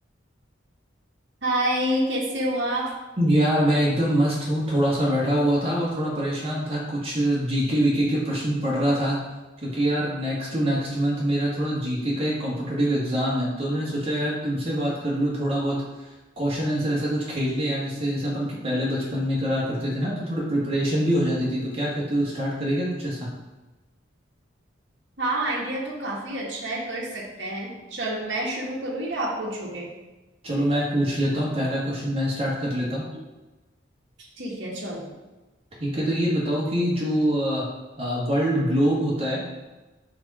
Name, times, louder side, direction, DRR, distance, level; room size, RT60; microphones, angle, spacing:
voice 1, 1.4-2.9 25.2-29.9 33.1-33.2 34.2-35.1, right 1 dB, 65° right, -4 dB, 1.3 m, -28 dB
voice 2, 3.2-9.2 9.6-15.8 16.4-23.3 30.4-33.0 35.8-37.7 38.0-39.4, equal, 30° right, -6 dB, 1.7 m, -24 dB
4.9 x 4.3 x 4.9 m, 1.1 s
head